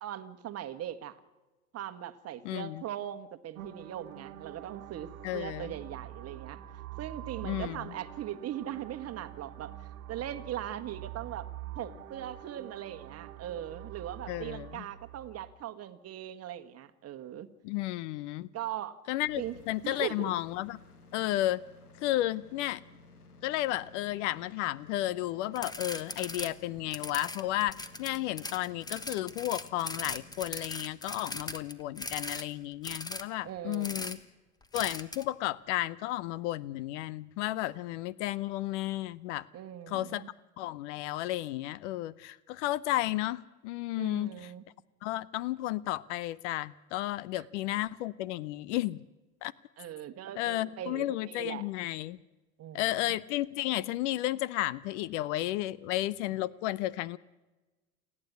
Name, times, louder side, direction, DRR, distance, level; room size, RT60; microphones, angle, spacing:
voice 1, 0.0-1.2 1.7-6.6 7.0-11.5 11.7-17.5 18.5-19.0 19.4-19.6 19.8-20.3 33.4-34.2 39.5-40.3 44.0-44.6 47.3-47.5 49.8-51.6 52.6-53.2, right 11 dB, 35° right, 9 dB, 1.5 m, -40 dB
voice 2, 2.4-2.8 5.2-5.7 7.4-7.8 14.3-14.8 17.6-18.5 19.1-19.4 19.7-20.8 21.1-21.6 22.0-22.8 23.4-34.2 34.7-39.5 39.9-40.2 40.6-44.3 45.0-49.0 49.4-49.5 50.4-52.2 52.7-57.2, left 15 dB, 50° left, 22 dB, 0.7 m, -33 dB
sound 1, 3.5-15.5, right 12 dB, 65° right, 1.5 m, -45 dB
sound 2, 19.2-33.1, left 3 dB, 90° left, 1.9 m, -56 dB
sound 3, 25.6-26.5 26.8-32.4 32.8-33.2 33.7-34.2 34.7-35.2, left 2 dB, 10° left, 1.2 m, -39 dB
28.5 x 9.8 x 9.5 m, 1.1 s
hypercardioid pair, 85°, 44 cm